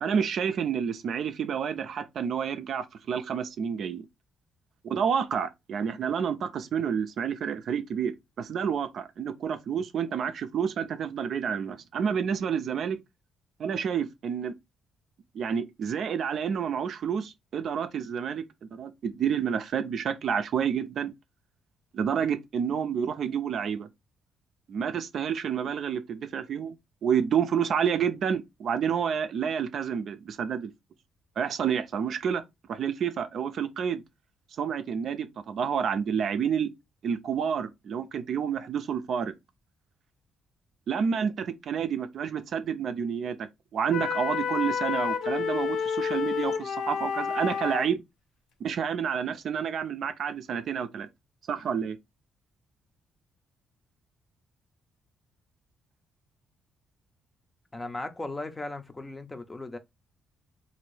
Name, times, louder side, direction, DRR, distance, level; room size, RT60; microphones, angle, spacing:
voice 1, 0.0-4.1 4.8-13.0 13.6-14.5 15.3-18.4 18.7-21.1 21.9-23.9 24.7-26.8 27.0-30.7 31.4-32.4 32.7-34.0 34.6-36.7 37.0-39.3 40.9-43.4 43.7-48.0 48.6-51.1 51.5-52.0, right 7 dB, 65° right, 0.4 m, -29 dB
sound 1, 43.9-47.9, left 6 dB, 75° left, 0.5 m, -29 dB
voice 2, 57.7-59.8, left 2 dB, 20° left, 0.5 m, -37 dB
2.9 x 2.6 x 3.1 m
cardioid pair, 90°, 0 cm